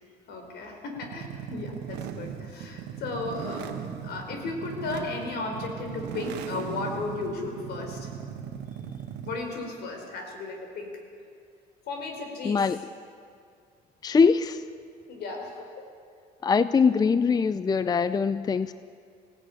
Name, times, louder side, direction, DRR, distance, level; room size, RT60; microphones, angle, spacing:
voice 1, 0.3-3.8 4.0-8.1 9.2-11.0 11.9-12.6 15.1-15.7, left 3 dB, 75° left, 3 dB, 4.5 m, -35 dB
sound 1, 1.0-9.5, right 8 dB, 90° right, 1.3 m, -38 dB
voice 2, 12.4-12.8 14.0-14.6 16.4-18.7, left 5 dB, 25° left, 14 dB, 0.5 m, -22 dB
18.5 x 16.5 x 9.3 m, 2.3 s
cardioid pair, 110°, 17 cm